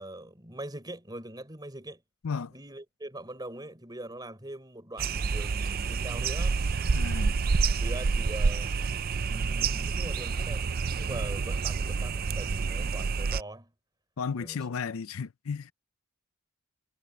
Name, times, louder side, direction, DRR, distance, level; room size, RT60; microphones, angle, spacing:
voice 1, 0.0-2.0 2.5-6.6 7.8-8.8 9.2-10.6 10.9-13.7 14.4-14.6, right 1 dB, 20° right, 4.4 m, -42 dB
sound 1, 5.0-13.4, right 4 dB, 40° right, 0.4 m, -28 dB
voice 2, 6.9-7.4 14.2-15.7, left 5 dB, 70° left, 0.5 m, -34 dB
head